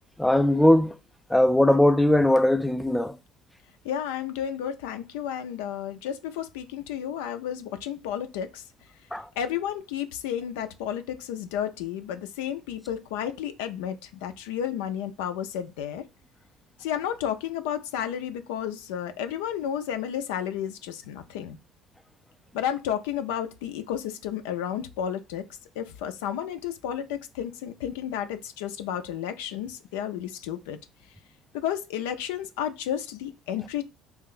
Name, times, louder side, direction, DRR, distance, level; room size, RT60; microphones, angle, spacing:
voice 1, 0.2-0.9 1.3-3.2 9.1-9.3, left 1 dB, 5° left, 0.3 m, -20 dB
voice 2, 3.8-8.6 9.4-16.0 16.8-21.6 22.5-25.4 25.8-30.8 31.5-33.9, left 9 dB, 80° left, 0.4 m, -32 dB
2.8 x 2.4 x 3.7 m
hypercardioid pair, 75°, 0 cm